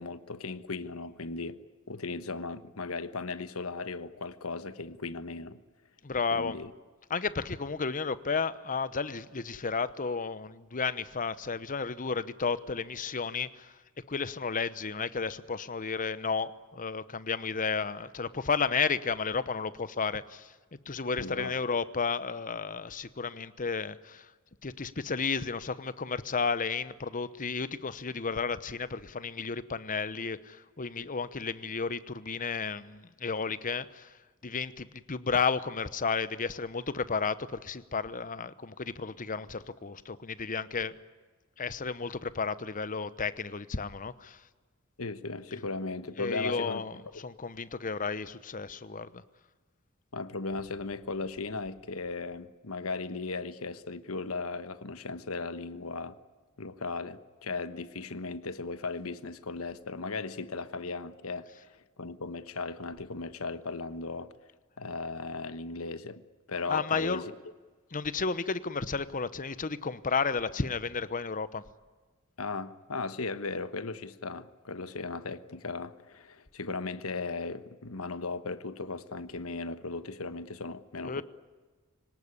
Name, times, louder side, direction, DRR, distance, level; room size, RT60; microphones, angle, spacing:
voice 1, 0.0-1.6 1.9-5.6 6.3-6.7 21.2-21.5 45.0-46.8 47.1-47.2 50.1-56.2 56.6-61.7 62.0-64.3 64.8-66.2 66.5-67.2 72.4-81.2, left 3 dB, 85° left, 1.2 m, -37 dB
voice 2, 6.0-6.6 7.1-13.7 14.1-20.5 20.9-24.3 24.6-34.2 34.4-41.0 41.6-44.4 46.2-49.2 66.7-67.2 67.9-71.6 81.0-81.2, left 5 dB, 40° left, 1.0 m, -32 dB
25.0 x 18.0 x 9.8 m
head